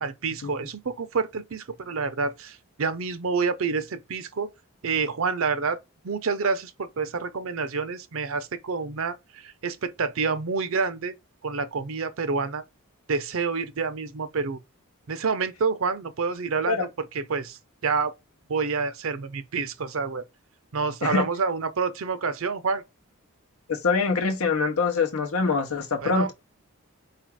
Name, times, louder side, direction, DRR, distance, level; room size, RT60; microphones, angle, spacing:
voice 1, 0.0-4.5 4.8-5.8 6.0-11.1 11.4-12.6 13.1-14.6 15.1-18.1 18.5-20.2 20.7-22.8 26.0-26.3, right 4 dB, 65° right, 0.6 m, -28 dB
voice 2, 23.7-26.3, left 4 dB, 75° left, 0.7 m, -24 dB
4.6 x 2.4 x 4.6 m
head